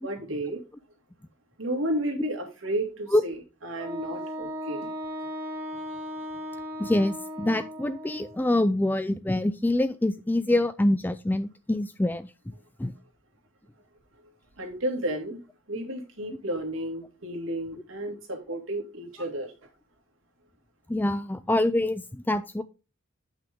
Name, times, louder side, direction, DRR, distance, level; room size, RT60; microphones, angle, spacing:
voice 1, 0.0-0.6 1.6-4.9 14.6-15.4 15.7-19.5, right 1 dB, 70° right, 2.2 m, -32 dB
Wind instrument woodwind instrument, 3.8-8.4, equal, 5° right, 2.7 m, -37 dB
voice 2, 6.8-12.3 12.8-12.9 20.9-22.6, left 1 dB, 10° left, 0.3 m, -25 dB
8.3 x 6.0 x 3.5 m
head